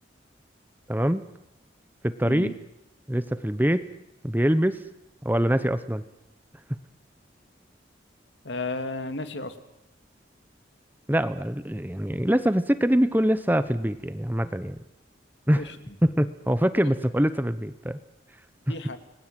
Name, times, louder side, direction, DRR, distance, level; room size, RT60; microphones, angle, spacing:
voice 1, 0.9-1.2 2.0-2.5 3.1-3.9 4.2-4.8 5.2-6.0 11.1-14.8 15.5-15.7 16.0-18.0, equal, 10° right, 12 dB, 1.0 m, -24 dB
voice 2, 8.4-9.5 15.5-15.9 16.8-16.9 18.7-19.0, left 2 dB, 80° left, 8 dB, 2.7 m, -33 dB
30.0 x 21.0 x 9.3 m, 0.90 s
head